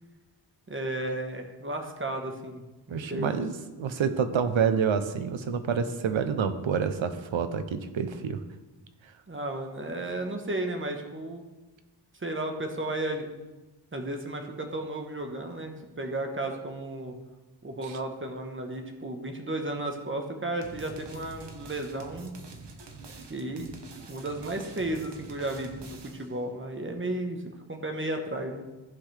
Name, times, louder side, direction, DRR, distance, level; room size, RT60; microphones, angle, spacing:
voice 1, 0.7-3.4 9.3-11.4 12.1-13.3 13.9-17.1 17.6-22.3 23.3-23.7 24.1-27.4 27.7-28.7, right 1 dB, 25° right, 4 dB, 1.2 m, -34 dB
voice 2, 2.9-3.5 3.8-8.4 17.8-18.0, right 6 dB, 85° right, 10 dB, 0.8 m, -28 dB
sound 1, 20.6-26.4, right 3 dB, 60° right, 1.2 m, -46 dB
15.0 x 5.7 x 3.4 m, 1.1 s
wide cardioid pair, 105°, 46 cm